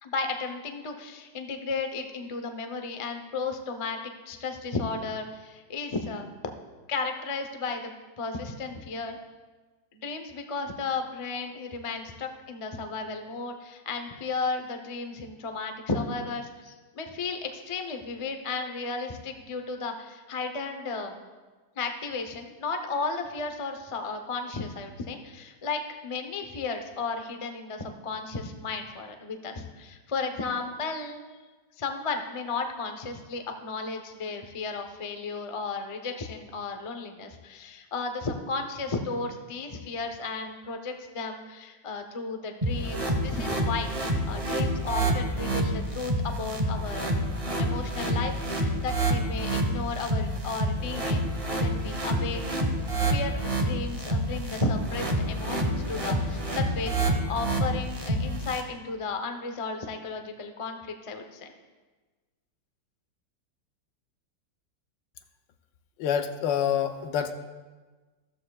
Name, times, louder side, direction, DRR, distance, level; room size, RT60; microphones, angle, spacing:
voice 1, 0.0-6.3 6.9-9.2 9.9-21.2 21.8-31.2 31.8-47.1 47.6-52.4 53.1-61.5, left 4 dB, 45° left, 5 dB, 0.4 m, -34 dB
sound 1, 42.6-58.6, right 1 dB, 25° right, 0.9 m, -28 dB
voice 2, 66.0-67.3, left 8 dB, 80° left, 7 dB, 1.4 m, -27 dB
14.0 x 13.5 x 2.3 m, 1.3 s
omnidirectional pair, 2.0 m